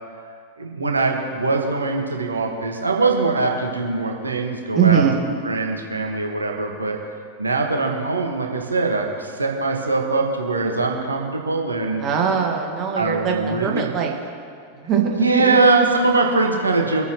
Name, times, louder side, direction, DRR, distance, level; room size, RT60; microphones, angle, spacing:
voice 1, 0.6-5.1 5.4-7.0 7.4-12.0 12.9-13.9 15.2-17.1, right 3 dB, 80° right, 1 dB, 1.7 m, -22 dB
voice 2, 4.8-5.2 12.0-14.1 14.8-15.6, right 7 dB, 35° right, 0 dB, 2.0 m, -21 dB
24.5 x 9.0 x 3.2 m, 2.2 s
figure-of-eight pair, 90°, 0 cm